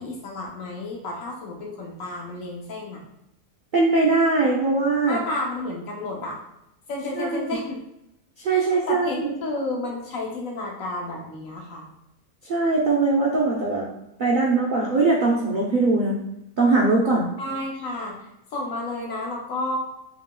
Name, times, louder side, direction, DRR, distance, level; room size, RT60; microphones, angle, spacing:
voice 1, 0.0-3.0 5.1-6.4 6.9-7.8 8.5-11.9 17.4-18.2 18.5-19.8, left 2 dB, 65° left, -2 dB, 1.1 m, -31 dB
voice 2, 3.7-5.2 7.2-7.4 8.4-9.3 12.5-13.9 14.2-16.2 16.6-17.3, right 3 dB, 60° right, -4 dB, 0.5 m, -21 dB
3.8 x 3.3 x 2.2 m, 0.84 s
omnidirectional pair, 1.7 m